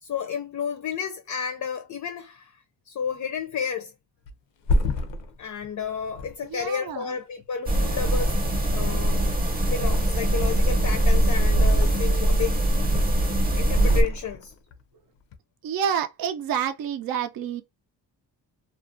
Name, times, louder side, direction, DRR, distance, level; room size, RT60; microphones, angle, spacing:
voice 1, 0.0-2.6 2.9-3.9 5.4-8.4 8.7-9.2 9.7-12.6 13.5-14.5, left 7 dB, 45° left, 0.5 m, -31 dB
Thump thud, 4.3-7.5 8.0-8.8 9.0-10.5 10.8-12.4 12.7-13.3 13.8-14.8 15.2-15.4, left 1 dB, 90° left, 0.5 m, -31 dB
voice 2, 6.5-7.0 15.6-17.6, right 8 dB, 55° right, 0.5 m, -28 dB
sound 1, 7.7-14.0, right 1 dB, 20° right, 0.7 m, -21 dB
2.4 x 2.1 x 2.5 m
cardioid pair, 105°, 42 cm